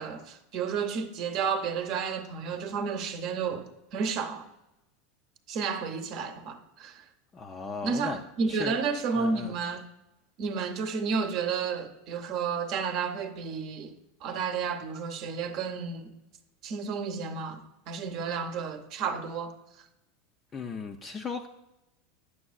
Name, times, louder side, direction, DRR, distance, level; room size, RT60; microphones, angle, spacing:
voice 1, 0.0-4.5 5.5-7.0 7.8-9.8 10.4-13.9 14.2-16.1 16.6-19.5, right 5 dB, 50° right, 0.7 m, -31 dB
voice 2, 7.3-8.2 8.5-8.8 9.1-9.6 20.5-21.5, left 5 dB, 25° left, 0.4 m, -36 dB
9.7 x 6.1 x 2.4 m
supercardioid pair, 135°, 0 cm